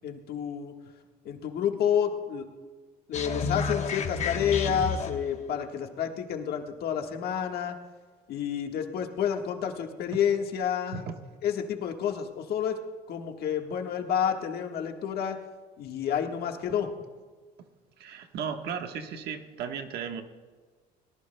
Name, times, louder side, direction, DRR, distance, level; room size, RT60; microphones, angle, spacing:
voice 1, 0.0-0.7 1.2-2.5 3.1-7.7 8.3-11.0 11.4-12.8 13.1-15.4 15.8-16.9, left 8 dB, 70° left, 4 dB, 1.5 m, -29 dB
sound 1, 3.1-5.4, left 6 dB, 40° left, 1.1 m, -31 dB
voice 2, 18.0-20.2, right 7 dB, 75° right, 5 dB, 1.3 m, -35 dB
22.5 x 18.5 x 2.2 m, 1.4 s
cardioid pair, 110°, 17 cm